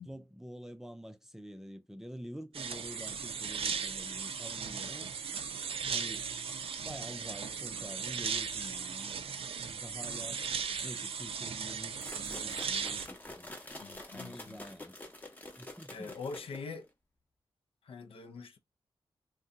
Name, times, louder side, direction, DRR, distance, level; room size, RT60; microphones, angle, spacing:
voice 1, 0.0-5.1 5.9-6.3 6.8-9.2 9.6-10.4 10.8-13.5 14.1-15.0 15.6-16.1, equal, 5° right, 0.3 m, -47 dB
sound 1, 2.5-13.1, right 6 dB, 80° right, 0.4 m, -37 dB
sound 2, 12.0-16.9, left 1 dB, 15° left, 0.7 m, -47 dB
voice 2, 13.8-14.6 15.9-16.9 17.8-18.6, left 4 dB, 75° left, 0.5 m, -43 dB
2.6 x 2.2 x 3.6 m
wide cardioid pair, 115°, 10 cm